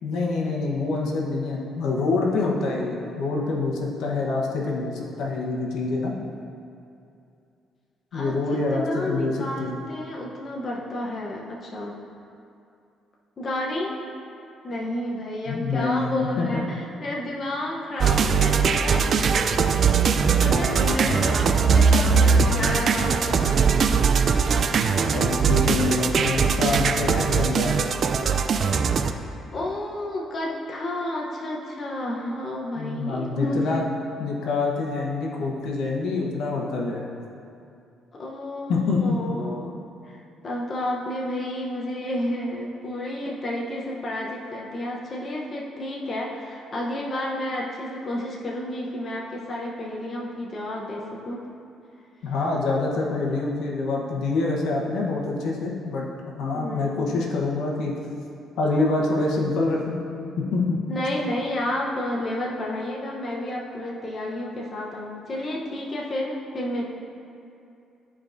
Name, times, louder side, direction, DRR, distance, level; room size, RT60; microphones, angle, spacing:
voice 1, 0.0-6.1 8.1-9.8 15.5-16.6 20.4-21.3 25.1-27.7 32.8-33.8 34.2-37.1 38.7-39.4 52.2-56.1 56.4-57.9 58.6-60.0 60.4-60.8, left 3 dB, 75° left, -2 dB, 1.0 m, -26 dB
voice 2, 8.1-11.9 13.4-14.0 14.6-19.3 20.4-24.0 29.5-33.8 38.1-39.8 40.1-51.5 56.5-57.2 60.9-66.8, left 1 dB, 35° left, -3 dB, 0.8 m, -31 dB
sound 1, 18.0-29.1, right 5 dB, 45° right, 0.3 m, -20 dB
12.5 x 4.8 x 2.6 m, 2.6 s
cardioid pair, 130°, 0 cm